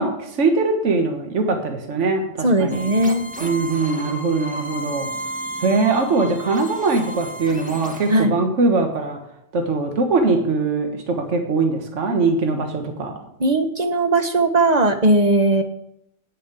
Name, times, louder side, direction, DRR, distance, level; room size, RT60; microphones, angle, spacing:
voice 1, 0.0-2.2 2.6-2.9 3.4-5.1 5.6-9.2 9.5-13.1, right 3 dB, 65° right, 4 dB, 1.6 m, -21 dB
voice 2, 2.4-3.3 8.1-8.4 13.4-15.6, right 2 dB, 35° right, 7 dB, 1.0 m, -18 dB
sound 1, 2.7-8.2, equal, 5° right, 1.3 m, -33 dB
8.7 x 7.0 x 8.1 m, 0.78 s
omnidirectional pair, 1.3 m